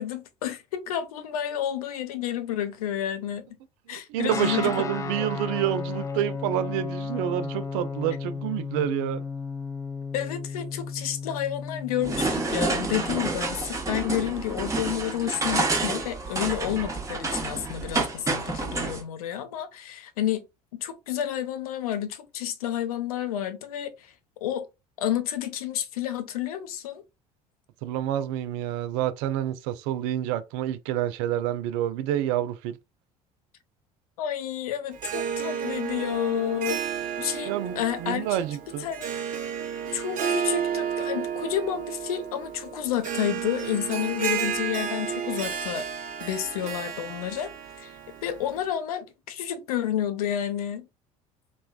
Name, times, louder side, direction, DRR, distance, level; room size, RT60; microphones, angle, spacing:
voice 1, 0.0-3.5 3.9-4.7 5.2-5.3 10.1-20.4 20.7-24.1 24.4-24.7 25.0-27.0 34.2-36.8 37.2-38.4 38.8-39.1 39.8-45.9 46.2-47.5 47.8-47.9 48.2-50.9, left 10 dB, 75° left, 0.5 m, -30 dB
voice 2, 3.9-9.2 27.8-32.8 37.5-38.9, right 11 dB, 60° right, 0.4 m, -28 dB
Guitar, 4.3-12.3, left 4 dB, 15° left, 0.3 m, -34 dB
sound 1, 12.0-19.0, right 3 dB, 15° right, 0.9 m, -29 dB
Harp, 34.9-48.7, right 8 dB, 45° right, 0.8 m, -32 dB
3.1 x 2.2 x 2.3 m
figure-of-eight pair, 60°, 19 cm